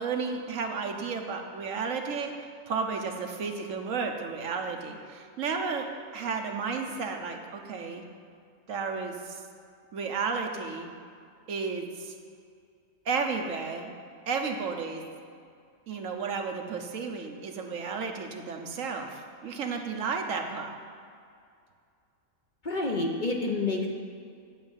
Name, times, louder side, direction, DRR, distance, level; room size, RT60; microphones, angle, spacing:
voice 1, 0.0-5.9 6.1-8.0 8.7-9.4 9.9-10.9 11.5-12.1 13.0-13.9 14.3-15.0 15.9-20.7, right 5 dB, 70° right, 4 dB, 1.2 m, -33 dB
voice 2, 22.6-23.9, left 3 dB, 40° left, 1 dB, 0.9 m, -28 dB
8.8 x 5.7 x 7.4 m, 2.3 s
omnidirectional pair, 1.4 m